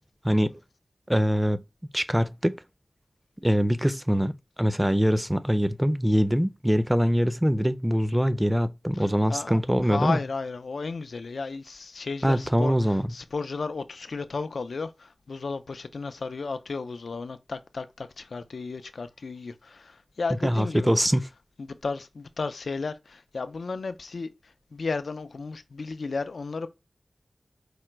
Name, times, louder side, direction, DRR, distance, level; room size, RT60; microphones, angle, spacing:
voice 1, 0.2-0.6 1.1-1.6 1.9-2.6 3.4-10.2 12.2-13.1 20.4-21.2, equal, 10° right, 0.5 m, -23 dB
voice 2, 9.3-21.0 21.6-24.3 24.7-26.7, left 4 dB, 85° left, 0.4 m, -34 dB
4.9 x 2.2 x 4.3 m
wide cardioid pair, 50°, 0 cm